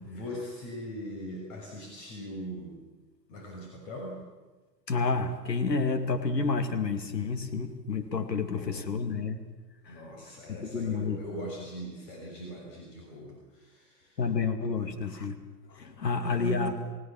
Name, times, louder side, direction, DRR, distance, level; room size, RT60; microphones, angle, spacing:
voice 1, 0.0-2.8 3.3-4.2 8.5-8.8 9.9-14.2 14.8-15.0 16.2-16.8, right 1 dB, 50° left, 0 dB, 6.7 m, -40 dB
voice 2, 4.9-9.4 9.9-10.0 10.5-11.2 14.2-15.4 15.7-16.7, left 4 dB, 85° left, 8 dB, 2.3 m, -30 dB
29.5 x 17.0 x 7.4 m, 1.3 s
hypercardioid pair, 100°, 49 cm